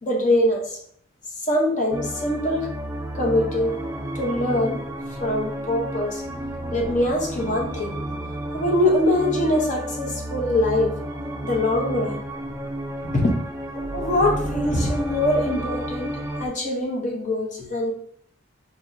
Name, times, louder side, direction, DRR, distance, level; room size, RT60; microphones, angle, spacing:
voice 1, 0.0-0.8 1.4-2.7 3.1-3.8 4.1-4.8 5.1-6.2 6.7-8.0 8.5-11.0 11.4-12.2 13.0-13.4 13.7-16.1 16.4-17.9, left 1 dB, 40° left, 1 dB, 0.9 m, -23 dB
sound 1, 1.9-16.5, right 1 dB, 15° right, 0.4 m, -31 dB
4.1 x 2.8 x 3.6 m, 0.65 s
head